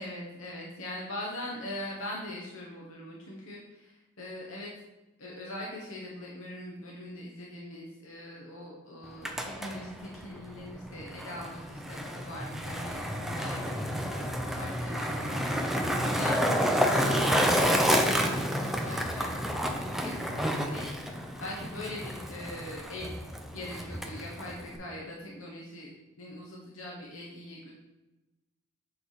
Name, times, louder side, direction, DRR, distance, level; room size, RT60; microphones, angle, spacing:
voice 1, 0.0-4.7 5.2-23.2 23.5-27.8, left 1 dB, 90° left, -3 dB, 1.3 m, -42 dB
Skateboard, 9.0-24.8, equal, ahead, 0.7 m, -30 dB
7.9 x 4.8 x 4.2 m, 1.0 s
head